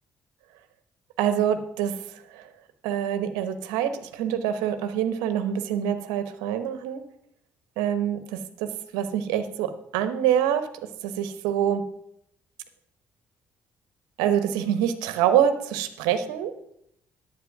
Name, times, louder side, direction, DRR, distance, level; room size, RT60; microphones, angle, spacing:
voice 1, 1.2-2.5 2.8-7.0 7.8-10.7 11.0-11.8 14.2-16.5, right 9 dB, 80° right, 10 dB, 1.0 m, -25 dB
10.5 x 8.5 x 6.0 m, 0.75 s
hypercardioid pair, 50°, 7 cm